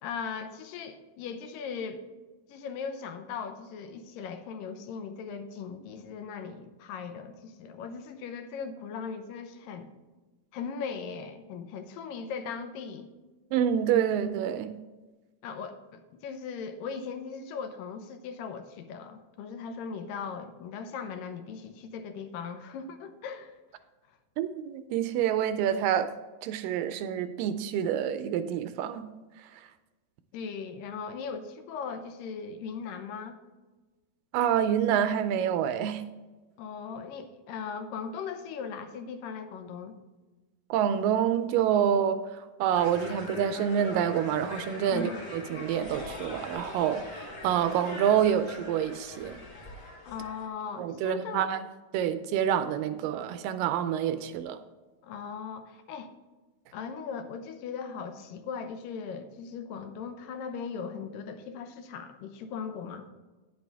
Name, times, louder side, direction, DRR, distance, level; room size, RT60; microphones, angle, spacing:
voice 1, 0.0-2.1 2.5-9.9 10.5-13.1 15.4-23.6 30.3-33.4 36.6-40.0 44.9-45.2 50.1-51.5 55.0-56.1 56.7-63.1, left 6 dB, 80° left, 8 dB, 2.3 m, -38 dB
voice 2, 13.5-14.7 24.4-26.1 26.4-29.1 34.3-36.1 40.7-49.4 50.8-51.6 51.9-54.6, right 9 dB, 80° right, 11 dB, 2.1 m, -27 dB
sound 1, 42.7-50.5, left 2 dB, 35° left, 2.2 m, -42 dB
9.7 x 9.1 x 3.5 m, 1.2 s
omnidirectional pair, 4.1 m